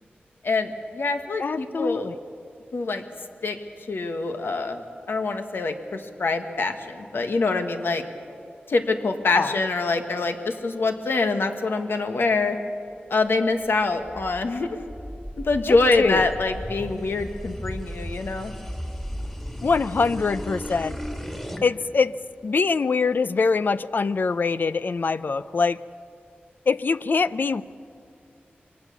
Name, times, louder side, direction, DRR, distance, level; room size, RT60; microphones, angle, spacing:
voice 1, 0.4-2.1 2.7-3.0 3.4-3.6 3.9-4.8 5.1-8.0 8.7-12.6 13.1-14.8 15.4-18.5, left 3 dB, 75° left, 6 dB, 1.5 m, -25 dB
voice 2, 1.4-2.2 9.3-9.5 15.7-16.2 19.6-21.0 21.6-22.1 22.4-25.8 26.7-27.6, left 4 dB, 55° left, 15 dB, 0.5 m, -23 dB
sound 1, 13.6-21.7, equal, 10° left, 2.5 m, -35 dB
24.0 x 18.0 x 7.1 m, 2.6 s
wide cardioid pair, 100°, 4 cm